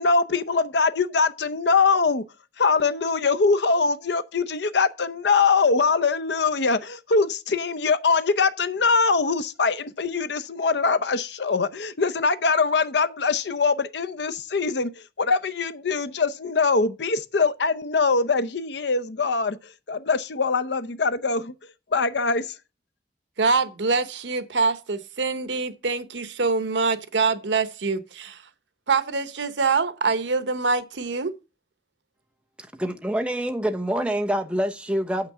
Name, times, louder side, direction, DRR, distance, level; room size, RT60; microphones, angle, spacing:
voice 1, 0.0-2.3 2.6-14.9 15.2-19.6 19.9-21.5 21.9-22.5, left 4 dB, 75° left, 0.7 m, -23 dB
voice 2, 23.4-28.4 28.9-31.3, right 4 dB, 85° right, 1.0 m, -24 dB
voice 3, 32.8-35.3, equal, 5° right, 0.8 m, -26 dB
7.4 x 5.9 x 6.7 m
head